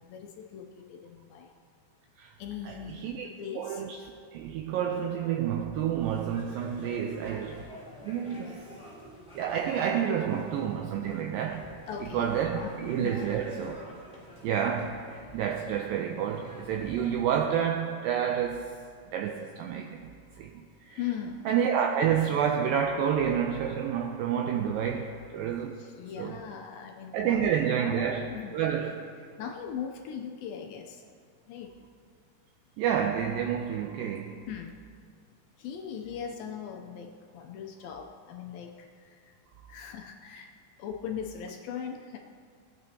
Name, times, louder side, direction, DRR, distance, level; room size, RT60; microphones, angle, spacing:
voice 1, 0.0-1.5 2.4-3.8 11.9-12.3 12.6-12.7 13.0-13.2 21.0-21.5 25.7-27.5 27.8-28.6 29.4-31.0 31.5-31.7 34.5-34.8 35.6-39.3 39.7-40.5 40.8-42.2, left 8 dB, 80° left, 3 dB, 2.2 m, -39 dB
voice 2, 3.6-4.0 4.3-7.7 8.0-8.6 9.4-11.7 12.1-13.8 14.4-15.0 15.3-18.7 19.1-20.1 20.4-21.0 21.5-25.8 26.2-26.4 27.1-29.1 32.8-34.5, right 8 dB, 85° right, 3 dB, 2.0 m, -29 dB
sound 1, 6.0-17.4, equal, ahead, 2.3 m, -48 dB
18.5 x 9.0 x 2.8 m, 2.1 s
omnidirectional pair, 4.6 m